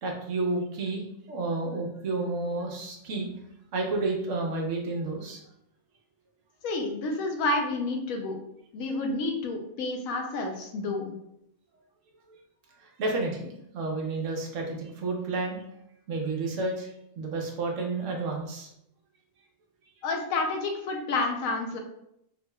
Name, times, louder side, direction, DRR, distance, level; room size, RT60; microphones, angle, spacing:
voice 1, 0.0-3.3 3.7-5.4 12.8-15.6 16.1-16.9 17.2-18.7, right 3 dB, 70° right, 1 dB, 1.1 m, -31 dB
voice 2, 6.6-8.4 8.7-11.1 20.0-21.8, left 2 dB, 85° left, 2 dB, 1.1 m, -29 dB
3.9 x 2.9 x 2.2 m, 0.77 s
omnidirectional pair, 1.4 m